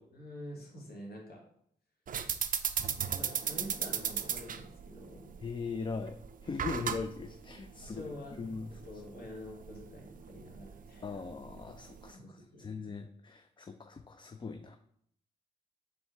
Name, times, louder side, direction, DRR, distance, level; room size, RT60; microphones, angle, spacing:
voice 1, 0.1-1.4 3.1-5.3 7.8-11.0 12.1-12.7, left 1 dB, 60° left, -1 dB, 1.5 m, -47 dB
sound 1, 2.1-12.1, right 7 dB, 50° right, 0.4 m, -37 dB
voice 2, 5.4-6.2 6.4-8.7 11.0-14.8, left 4 dB, 25° left, 7 dB, 0.4 m, -40 dB
4.3 x 3.2 x 3.4 m, 0.69 s
supercardioid pair, 45°, 18 cm